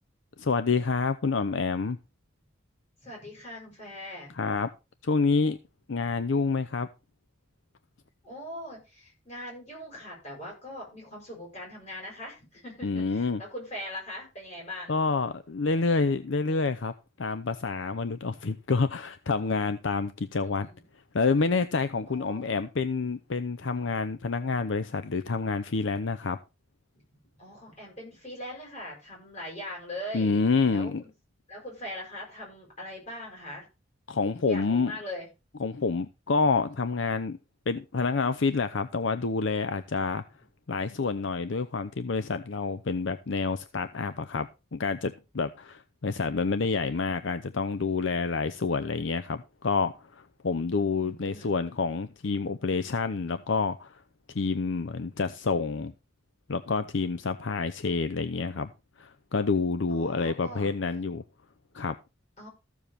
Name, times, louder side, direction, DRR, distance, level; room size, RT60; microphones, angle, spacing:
voice 1, 0.4-2.0 4.3-4.7 5.0-5.6 5.9-6.9 12.8-13.4 14.9-20.7 21.1-26.4 30.1-31.0 34.1-34.9 35.6-37.4 37.7-40.2 40.7-54.0 54.3-55.9 56.5-58.7 59.0-61.2 61.7-61.9, left 4 dB, 70° left, 0.6 m, -28 dB
voice 2, 3.0-4.3 8.2-14.9 20.4-20.9 22.1-22.5 27.4-30.3 30.7-31.1 31.5-33.7 34.3-35.3 46.5-47.1 50.9-51.6 59.9-60.7 62.4-62.5, left 1 dB, 35° left, 7.1 m, -41 dB
14.5 x 7.1 x 4.2 m
head